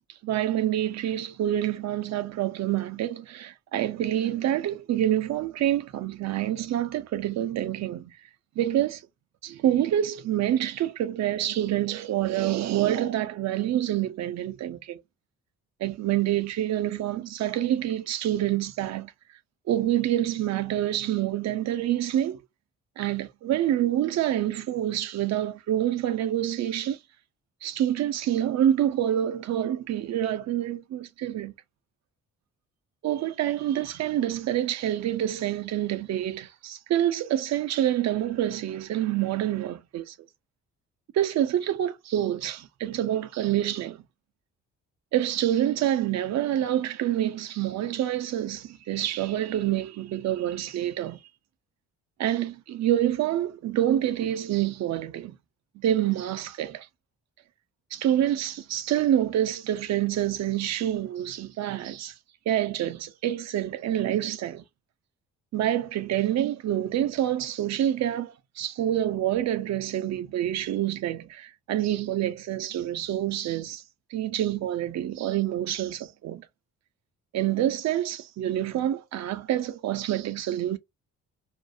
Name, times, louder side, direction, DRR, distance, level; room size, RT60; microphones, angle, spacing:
voice 1, 0.2-8.2 8.6-9.0 9.4-15.0 15.8-19.1 19.7-22.4 23.0-27.0 27.6-31.5 33.0-40.2 41.1-44.0 45.1-51.2 52.2-55.3 55.8-56.9 57.9-62.1 62.5-64.6 65.5-73.8 74.1-76.4 77.3-80.8, right 12 dB, 65° right, 0.5 m, -27 dB
2.5 x 2.0 x 2.5 m
cardioid pair, 90°, 30 cm